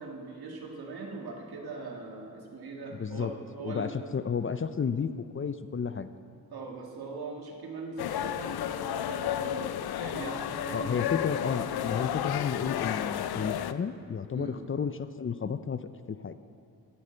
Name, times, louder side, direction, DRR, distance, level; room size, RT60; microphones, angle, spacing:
voice 1, 0.0-3.9 6.5-9.7 10.0-11.2 14.3-14.6, right 3 dB, 80° right, 0 dB, 1.8 m, -40 dB
voice 2, 2.9-3.3 3.6-6.1 10.7-15.8 16.1-16.3, left 6 dB, 35° left, 12 dB, 0.5 m, -32 dB
sound 1, 8.0-13.7, left 11 dB, 85° left, 0.5 m, -32 dB
13.5 x 11.5 x 4.4 m, 2.4 s
cardioid pair, 70°, 37 cm